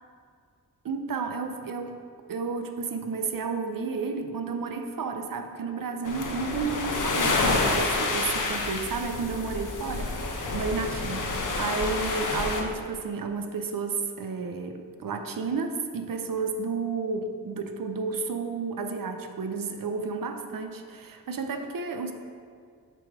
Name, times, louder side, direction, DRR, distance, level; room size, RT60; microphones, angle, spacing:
voice 1, 0.8-2.0 2.3-22.1, right 4 dB, 65° right, 6 dB, 0.6 m, -32 dB
sound 1, 6.0-12.6, left 3 dB, 55° left, 0.9 m, -28 dB
6.7 x 3.3 x 4.9 m, 2.2 s
cardioid pair, 55°, 37 cm